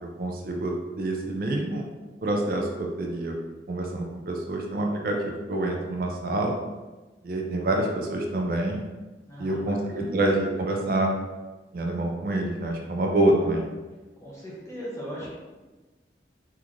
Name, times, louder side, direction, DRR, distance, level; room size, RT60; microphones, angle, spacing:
voice 1, 0.0-1.9 2.2-3.3 3.7-6.5 7.2-8.8 9.4-11.1 11.7-13.6, right 1 dB, 55° right, 1 dB, 0.4 m, -27 dB
voice 2, 9.2-10.1 14.2-15.3, equal, 15° left, -5 dB, 0.6 m, -38 dB
3.6 x 2.4 x 3.0 m, 1.2 s
head